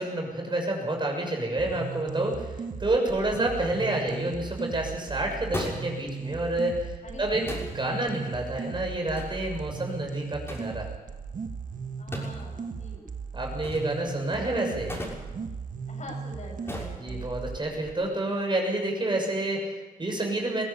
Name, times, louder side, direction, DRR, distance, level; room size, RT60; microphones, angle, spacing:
voice 1, 0.0-10.9 13.3-15.0 17.0-20.6, right 1 dB, 30° right, 1 dB, 6.8 m, -29 dB
sound 1, 1.6-17.6, right 5 dB, 65° right, 1.5 m, -37 dB
sound 2, 4.2-17.9, left 1 dB, 15° left, 6.5 m, -43 dB
voice 2, 7.0-8.0 12.0-13.1 15.9-17.2, left 1 dB, 55° left, 1 dB, 7.5 m, -44 dB
21.5 x 15.5 x 8.4 m, 1.2 s
cardioid pair, 85°, 15 cm